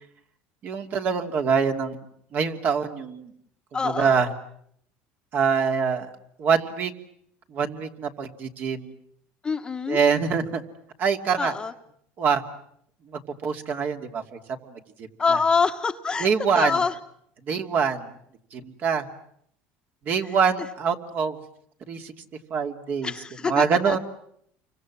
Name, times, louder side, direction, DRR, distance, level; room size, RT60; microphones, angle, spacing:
voice 1, 0.6-2.0 2.3-3.3 3.8-4.3 5.3-6.1 6.4-6.9 7.5-8.9 9.9-10.6 11.0-11.5 12.2-12.4 13.1-15.1 16.2-16.8 17.4-18.1 18.5-19.1 20.0-21.4 21.9-22.1 22.5-23.1 23.4-24.0, right 6 dB, 45° right, 5 dB, 2.8 m, -24 dB
voice 2, 3.7-4.2 9.4-10.0 11.4-11.7 15.2-16.3 16.5-17.0 23.0-24.0, left 5 dB, 20° left, 7 dB, 1.3 m, -25 dB
29.5 x 25.0 x 7.5 m, 0.69 s
cardioid pair, 130°, 5 cm